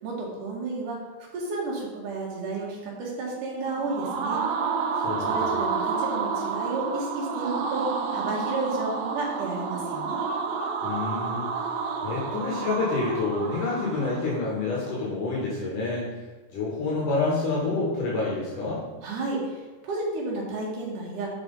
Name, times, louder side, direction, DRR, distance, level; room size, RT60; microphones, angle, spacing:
voice 1, 0.0-1.0 1.3-4.4 5.2-7.8 8.1-10.2 19.0-21.3, right 3 dB, 65° right, -3 dB, 3.2 m, -32 dB
sound 1, 3.6-14.5, right 5 dB, 85° right, 2.6 m, -30 dB
voice 2, 5.0-5.4 10.8-11.5 12.0-16.1 16.5-18.8, left 3 dB, 65° left, -5 dB, 3.0 m, -28 dB
7.6 x 4.9 x 5.3 m, 1.2 s
omnidirectional pair, 4.1 m